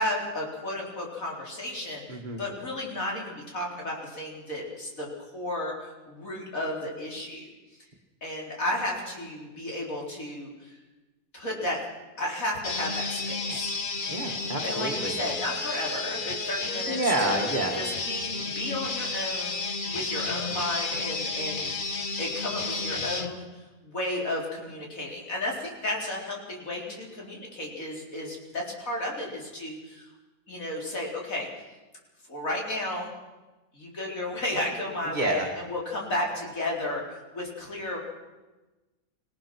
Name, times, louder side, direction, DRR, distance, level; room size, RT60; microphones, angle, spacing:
voice 1, 0.0-5.1 5.3-7.5 8.2-10.8 11.3-11.8 12.2-13.7 14.6-17.4 17.7-21.7 22.2-30.1 30.5-31.5 32.3-33.1 33.7-38.0, left 1 dB, 65° left, -2 dB, 4.6 m, -33 dB
voice 2, 2.1-2.4 14.1-15.2 16.7-17.8 35.1-35.5, right 2 dB, 30° right, 0 dB, 1.9 m, -29 dB
sound 1, 12.6-23.3, left 3 dB, 35° left, 1.3 m, -32 dB
26.0 x 17.5 x 6.2 m, 1.2 s
omnidirectional pair, 1.5 m